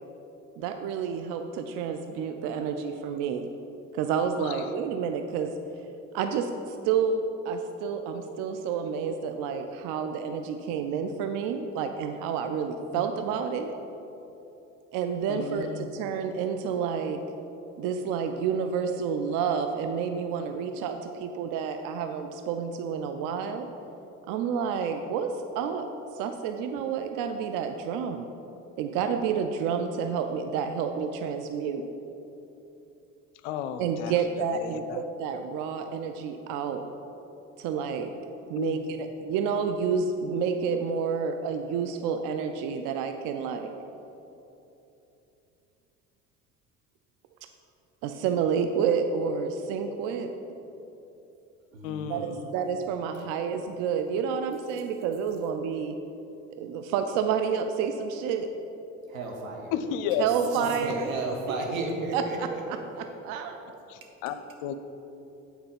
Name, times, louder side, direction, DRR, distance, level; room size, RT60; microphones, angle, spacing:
voice 1, 0.6-3.5 3.9-5.5 6.1-13.8 14.9-17.2 17.8-23.7 24.3-25.9 26.1-28.3 28.8-31.8 33.8-36.9 37.6-38.1 38.5-43.7 48.0-50.3 52.1-56.0 56.6-58.5 60.2-61.1 62.1-63.6, right 6 dB, 50° right, 6 dB, 0.5 m, -29 dB
voice 2, 15.3-15.9 33.4-34.1 34.5-35.0 38.6-38.8 51.8-52.5 59.7-60.3 63.9-64.7, left 8 dB, 60° left, 10 dB, 0.6 m, -33 dB
voice 3, 51.7-52.1 59.1-59.7 60.1-60.3 60.5-62.6, right 2 dB, 80° right, 1 dB, 1.1 m, -33 dB
8.8 x 4.4 x 5.2 m, 3.0 s
figure-of-eight pair, 55°, 40 cm